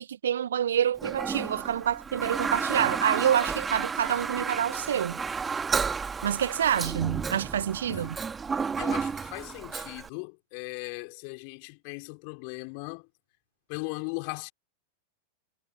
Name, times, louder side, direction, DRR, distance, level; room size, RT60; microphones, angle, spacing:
voice 1, 0.0-5.2 6.2-8.2, right 9 dB, 65° right, 1.5 m, -27 dB
Toilet flush, 1.0-10.1, right 5 dB, 15° right, 2.2 m, -32 dB
voice 2, 8.8-13.1 13.7-14.5, left 40 dB or more, 45° left, 4.9 m, -38 dB
figure-of-eight pair, 90°, 0 cm